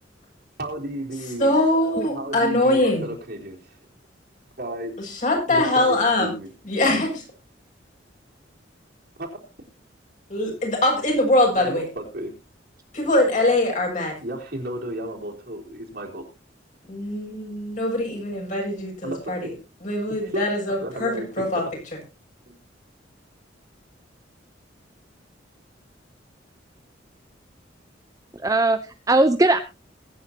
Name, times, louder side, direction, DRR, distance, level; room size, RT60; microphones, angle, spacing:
voice 1, 0.6-1.5 2.1-3.8 4.6-5.0 5.5-6.5 9.2-9.3 11.6-12.3 14.2-16.2 19.0-19.6 20.3-20.4 20.8-21.6 22.5-22.6, right 1 dB, 55° right, 0 dB, 3.7 m, -33 dB
voice 2, 1.4-3.1 5.0-6.3 6.6-7.2 10.3-11.8 12.9-14.1 16.9-19.4 19.8-21.6, left 1 dB, 40° left, 0 dB, 6.7 m, -22 dB
voice 3, 28.3-29.6, right 2 dB, 20° right, 8 dB, 0.7 m, -19 dB
22.5 x 9.4 x 2.8 m, 0.29 s
head